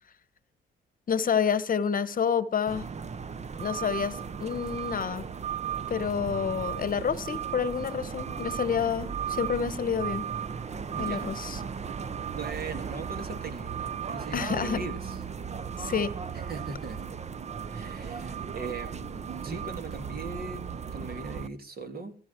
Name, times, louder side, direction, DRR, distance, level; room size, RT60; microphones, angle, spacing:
voice 1, 1.1-2.9 3.6-5.2 5.9-10.3 11.0-11.6 14.3-14.8 15.8-16.2, left 7 dB, 45° left, 1.1 m, -28 dB
sound 1, 2.7-21.5, right 7 dB, 35° right, 0.8 m, -36 dB
voice 2, 10.9-11.3 12.3-15.2 16.3-17.1 17.7-22.2, right 3 dB, 50° right, 3.0 m, -39 dB
16.5 x 14.5 x 4.4 m
cardioid pair, 90°, 20 cm